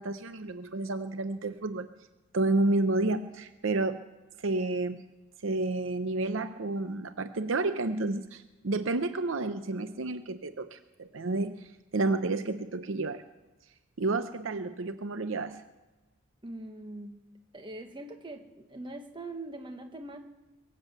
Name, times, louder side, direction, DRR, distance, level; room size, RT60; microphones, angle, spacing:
voice 1, 0.0-1.9 2.3-4.0 4.4-5.0 5.4-13.2 14.0-15.6, right 2 dB, 65° right, 10 dB, 0.7 m, -30 dB
voice 2, 16.4-17.2 17.5-20.2, right 2 dB, 20° right, 5 dB, 1.3 m, -42 dB
22.5 x 7.6 x 8.1 m, 1.1 s
head